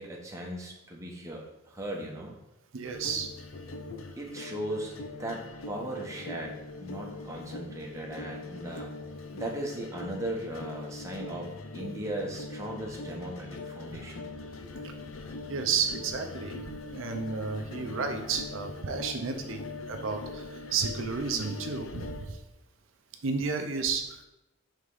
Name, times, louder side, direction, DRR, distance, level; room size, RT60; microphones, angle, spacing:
voice 1, 0.0-2.3 4.2-8.9 9.3-14.3 14.6-14.7, right 1 dB, 15° right, -2 dB, 0.9 m, -38 dB
voice 2, 2.7-3.3 13.9-14.0 14.8-14.9 15.5-22.4 23.2-24.2, right 5 dB, 70° right, 5 dB, 0.6 m, -32 dB
sound 1, 2.8-22.2, left 3 dB, 80° left, 0.6 m, -42 dB
4.8 x 3.6 x 5.4 m, 0.93 s
head